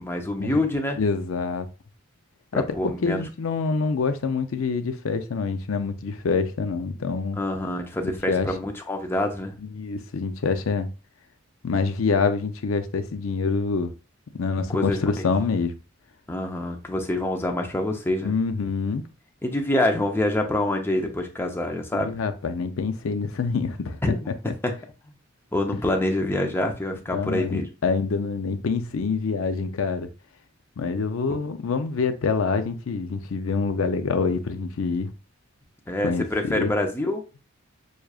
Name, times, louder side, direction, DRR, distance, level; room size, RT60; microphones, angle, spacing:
voice 1, 0.0-1.0 2.5-3.2 7.4-9.5 14.7-15.0 16.3-18.3 19.4-22.2 24.0-24.3 24.6-24.7 25.5-27.7 31.3-31.4 35.9-37.2, left 1 dB, 10° left, 0.6 m, -26 dB
voice 2, 1.0-1.7 2.5-2.6 3.0-7.4 8.0-8.5 9.6-10.9 11.6-13.9 14.3-15.7 18.2-19.0 21.9-24.0 27.1-30.1 30.8-35.1 36.0-36.7, left 4 dB, 70° left, 0.5 m, -26 dB
6.3 x 2.3 x 2.3 m
head